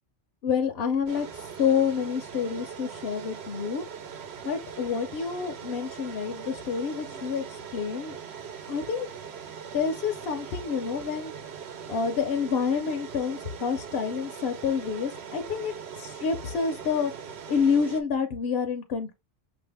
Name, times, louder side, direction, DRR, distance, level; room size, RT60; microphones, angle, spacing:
voice 1, 0.4-3.8 4.4-8.2 8.7-9.1 9.7-11.3 11.9-19.1, left 6 dB, 65° left, 0.8 m, -28 dB
sound 1, 1.1-18.0, right 7 dB, 70° right, 0.9 m, -41 dB
5.8 x 2.6 x 3.3 m
omnidirectional pair, 1.2 m